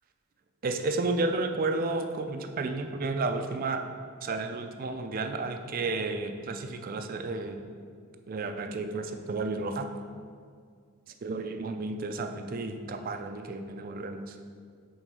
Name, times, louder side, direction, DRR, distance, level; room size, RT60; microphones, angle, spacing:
voice 1, 0.6-3.8 4.2-7.6 8.3-9.9 11.2-14.4, right 3 dB, 40° right, 6 dB, 0.4 m, -32 dB
6.1 x 3.8 x 5.3 m, 2.1 s
head